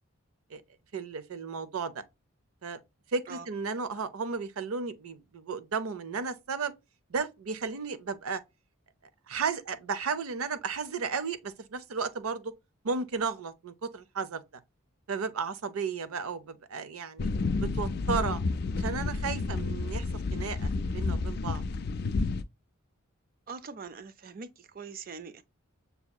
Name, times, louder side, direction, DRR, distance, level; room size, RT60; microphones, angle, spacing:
voice 1, 0.9-2.0 2.6-2.8 3.1-6.7 7.1-8.4 9.3-12.5 12.8-14.4 15.1-17.3 17.6-18.4 18.7-20.0 20.3-21.6, right 5 dB, 90° right, 0.6 m, -34 dB
sound 1, 17.2-22.4, left 3 dB, 50° left, 0.3 m, -30 dB
voice 2, 23.5-25.4, right 5 dB, 40° right, 0.4 m, -43 dB
6.9 x 2.7 x 2.3 m
head